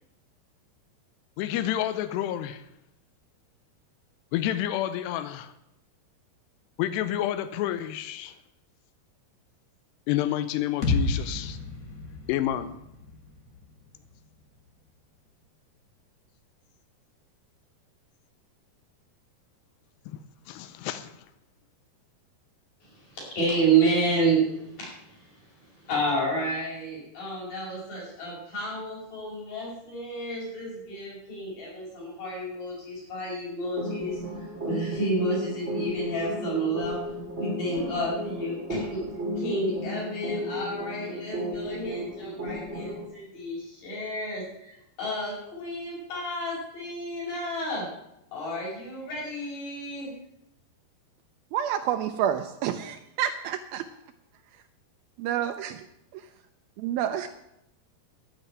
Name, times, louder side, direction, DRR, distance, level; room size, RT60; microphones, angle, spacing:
voice 1, 1.4-2.6 4.3-5.5 6.8-8.4 10.1-11.6 12.3-12.7 20.1-20.2 20.5-21.1, left 12 dB, 85° left, 2.8 m, -29 dB
sound 1, 10.8-14.7, left 3 dB, 65° left, 0.8 m, -32 dB
voice 2, 22.8-25.3 25.8-37.0 37.3-39.0 39.4-47.9 48.3-50.1, right 2 dB, 50° left, 7.2 m, -30 dB
sound 2, 33.8-43.1, equal, 25° right, 1.5 m, -34 dB
voice 3, 51.5-53.8 55.2-55.8 56.8-57.3, right 10 dB, 80° right, 2.3 m, -28 dB
12.5 x 6.6 x 9.1 m
omnidirectional pair, 4.7 m